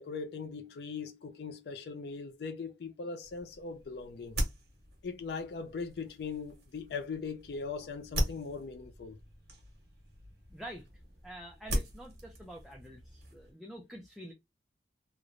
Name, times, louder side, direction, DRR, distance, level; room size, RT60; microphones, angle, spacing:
voice 1, 0.0-4.4 5.0-9.2, left 5 dB, 65° left, 0.4 m, -40 dB
sound 1, 3.2-13.5, equal, 65° right, 1.1 m, -40 dB
voice 2, 10.5-10.9 11.2-14.3, right 1 dB, ahead, 0.4 m, -47 dB
3.0 x 2.1 x 2.4 m
head